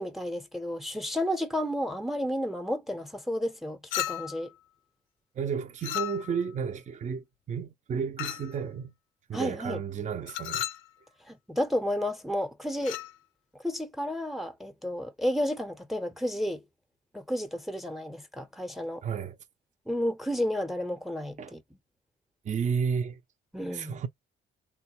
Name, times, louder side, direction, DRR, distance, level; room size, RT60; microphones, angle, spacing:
voice 1, 0.0-4.5 9.3-9.8 11.3-13.0 13.6-16.6 17.1-19.0 19.9-21.6 23.5-24.0, equal, ahead, 0.7 m, -31 dB
Chink clink, 3.9-4.5 5.8-6.5 8.2-8.6 10.3-10.9 12.8-13.1, left 13 dB, 85° left, 0.4 m, -34 dB
voice 2, 5.3-8.9 9.3-10.7 19.0-19.4 21.4-21.5 22.4-23.2 23.7-24.1, right 6 dB, 40° right, 0.5 m, -32 dB
3.5 x 2.2 x 2.9 m
cardioid pair, 90°, 20 cm